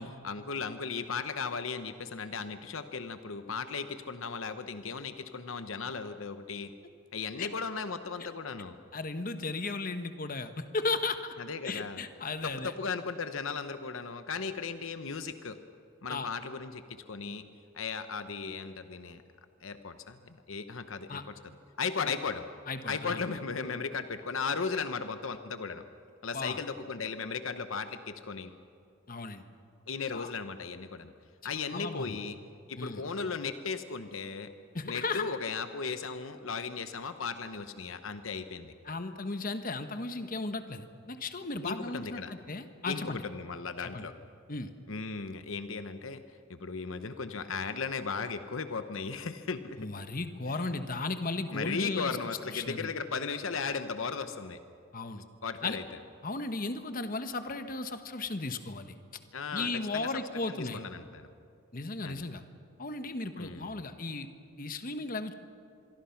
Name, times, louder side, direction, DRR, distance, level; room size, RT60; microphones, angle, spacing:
voice 1, 0.2-6.7 7.1-8.8 11.4-12.0 12.4-15.6 16.0-17.4 17.7-19.2 19.6-21.2 21.8-22.4 22.9-25.8 26.2-28.5 29.9-31.1 31.4-32.4 32.7-34.5 34.9-38.7 41.6-42.3 42.9-44.1 44.9-49.9 50.5-50.7 51.5-54.6 55.4-55.8 59.3-60.1 60.5-61.3 62.0-62.2 63.4-63.8, left 5 dB, 70° left, 10 dB, 0.9 m, -36 dB
voice 2, 8.9-11.3 11.6-12.7 16.1-16.3 21.1-21.2 22.0-22.1 22.7-23.2 26.3-26.6 29.1-29.4 30.1-30.3 31.4-32.2 32.8-33.0 34.7-35.2 38.9-43.2 43.8-44.1 44.5-44.7 49.8-52.2 52.5-52.9 54.9-55.2 55.6-55.8 56.2-59.0 59.5-60.8 61.7-62.4 62.8-64.3 64.6-65.3, left 3 dB, 40° left, 9 dB, 1.2 m, -35 dB
26.0 x 23.0 x 5.9 m, 2.4 s
head